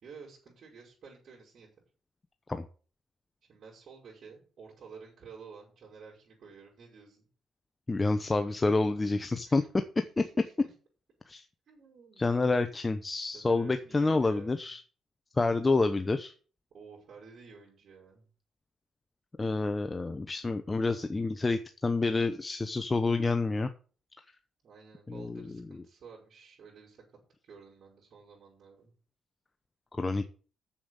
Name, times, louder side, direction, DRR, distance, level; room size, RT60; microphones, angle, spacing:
voice 1, 0.0-1.7 3.4-7.3 9.4-9.7 10.0-10.7 11.7-12.7 13.3-14.7 16.7-18.3 24.6-27.0 27.4-28.9, right 5 dB, 55° right, -5 dB, 5.6 m, -52 dB
voice 2, 7.9-9.6 11.3-11.4 12.2-14.8 15.4-16.3 19.4-23.7 25.1-25.6 30.0-30.3, left 3 dB, 20° left, 9 dB, 0.9 m, -28 dB
7.2 x 7.1 x 8.1 m, 0.39 s
cardioid pair, 90°, 0 cm